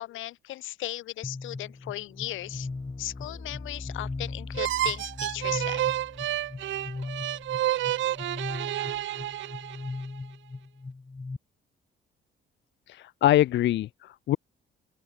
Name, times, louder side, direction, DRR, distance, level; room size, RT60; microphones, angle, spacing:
voice 1, 0.0-2.7 3.0-5.8, left 15 dB, 85° left, 1.0 m, -37 dB
sound 1, 1.2-11.4, left 3 dB, 20° left, 4.1 m, -38 dB
sound 2, 4.5-10.1, right 14 dB, 70° right, 0.7 m, -30 dB
voice 2, 12.9-14.4, left 13 dB, 65° left, 0.5 m, -24 dB
open air
cardioid pair, 90°, 20 cm